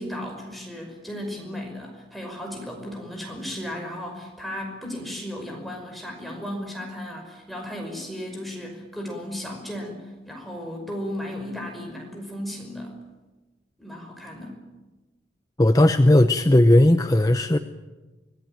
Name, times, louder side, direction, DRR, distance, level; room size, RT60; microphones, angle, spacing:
voice 1, 0.0-12.9 13.8-14.6, left 1 dB, ahead, 1 dB, 5.6 m, -35 dB
voice 2, 15.6-17.6, left 1 dB, 20° left, 7 dB, 0.7 m, -16 dB
25.5 x 18.0 x 9.1 m, 1.2 s
head